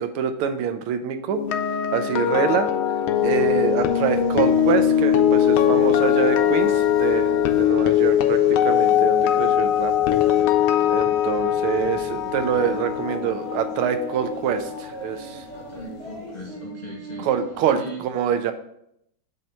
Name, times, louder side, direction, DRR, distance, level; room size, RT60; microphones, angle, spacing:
voice 1, 0.0-1.4 1.9-2.7 3.2-9.9 10.9-15.4 17.2-18.5, right 8 dB, 90° right, 8 dB, 1.5 m, -25 dB
sound 1, 1.3-15.4 15.6-15.9, left 10 dB, 80° left, 1.4 m, -21 dB
sound 2, 3.1-17.7, right 3 dB, 65° right, 3.0 m, -41 dB
voice 2, 15.5-17.3 17.7-18.0, left 1 dB, 30° left, -3 dB, 0.8 m, -38 dB
7.4 x 2.8 x 5.4 m, 0.74 s
omnidirectional pair, 2.3 m